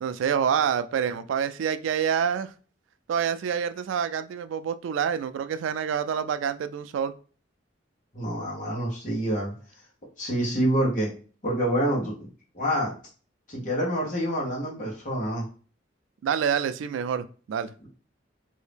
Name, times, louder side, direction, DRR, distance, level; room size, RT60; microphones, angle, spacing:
voice 1, 0.0-2.5 3.1-7.1 16.2-17.9, right 7 dB, 85° right, 0.3 m, -27 dB
voice 2, 8.1-9.5 10.2-11.1 11.4-12.3 12.5-12.9 13.5-15.5, equal, 40° left, 1.3 m, -27 dB
2.8 x 2.7 x 3.4 m
head